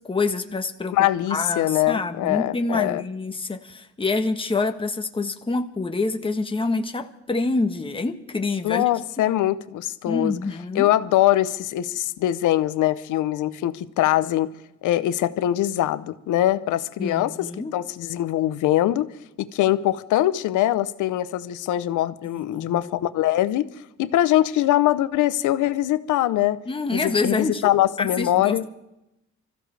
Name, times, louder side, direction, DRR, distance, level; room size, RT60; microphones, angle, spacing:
voice 1, 0.1-1.0 1.3-8.8 10.1-10.9 17.0-17.7 22.3-22.8 26.7-27.7 28.0-28.7, left 3 dB, 15° left, 1.2 m, -26 dB
voice 2, 0.9-3.0 8.6-10.4 10.7-14.5 14.8-19.1 19.4-23.7 24.0-26.6 26.9-28.7, left 13 dB, 85° left, 0.8 m, -22 dB
25.0 x 14.5 x 3.4 m
cardioid pair, 90°, 30 cm